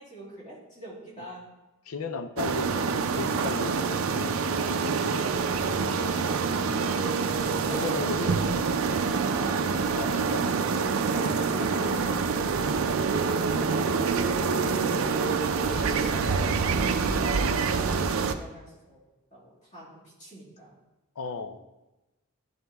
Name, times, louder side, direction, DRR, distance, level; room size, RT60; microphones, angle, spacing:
voice 1, 0.0-1.5 7.4-9.7 11.7-12.0 13.6-13.8 15.6-19.0 19.3-20.8, right 1 dB, 35° left, -5 dB, 2.3 m, -43 dB
voice 2, 1.9-4.2 4.9-5.0 6.2-6.4 7.7-8.4 9.3-9.4 9.9-10.5 11.1-11.8 21.2-21.6, left 4 dB, 85° left, 9 dB, 0.6 m, -36 dB
sound 1, 2.4-18.3, right 5 dB, 70° right, 0.5 m, -26 dB
11.0 x 3.9 x 3.5 m, 1.0 s
head